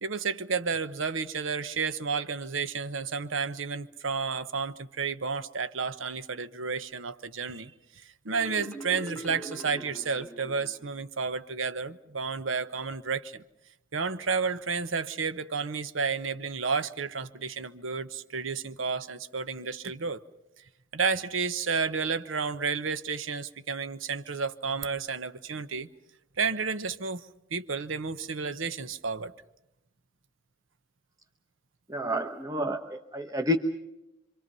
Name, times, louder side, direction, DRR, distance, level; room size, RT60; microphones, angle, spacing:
voice 1, 0.0-7.7 8.0-13.4 13.9-20.2 20.9-25.9 26.4-27.3 27.5-29.3, right 5 dB, 70° right, 1.0 m, -31 dB
Marimba xylophone, 8.3-11.0, right 1 dB, 10° left, 1.4 m, -43 dB
voice 2, 31.9-33.6, equal, 15° right, 1.1 m, -30 dB
26.5 x 25.5 x 5.5 m
head